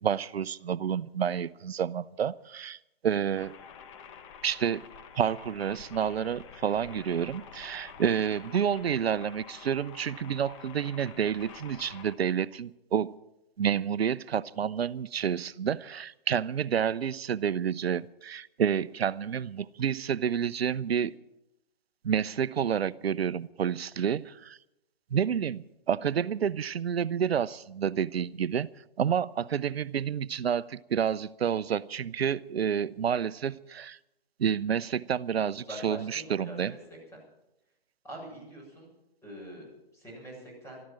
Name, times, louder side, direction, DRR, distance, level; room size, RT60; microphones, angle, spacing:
voice 1, 0.0-2.8 3.0-3.5 4.4-4.9 5.2-13.1 13.6-21.1 22.0-24.6 25.1-28.7 29.0-34.0 34.4-36.7, right 8 dB, 85° right, 17 dB, 0.6 m, -29 dB
sound 1, 3.4-12.1, left 7 dB, 30° left, 1.3 m, -48 dB
voice 2, 35.6-36.8 37.1-37.2 38.0-38.9 39.2-40.8, right 1 dB, 10° left, -3 dB, 7.2 m, -44 dB
14.5 x 13.0 x 7.5 m, 0.89 s
hypercardioid pair, 145°, 30 cm